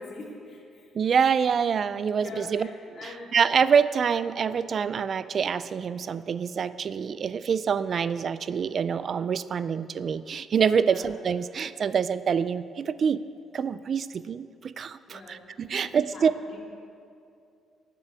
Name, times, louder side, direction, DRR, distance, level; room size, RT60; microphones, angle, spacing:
voice 1, 0.0-0.9 2.2-2.7 3.0-3.3 10.8-11.0 15.1-15.4 15.7-16.6, left 2 dB, 55° left, -2 dB, 2.8 m, -43 dB
voice 2, 1.0-2.7 3.0-13.2 13.5-16.3, right 6 dB, 50° right, 15 dB, 0.4 m, -26 dB
11.5 x 6.8 x 8.3 m, 2.5 s
cardioid pair, 90°, 0 cm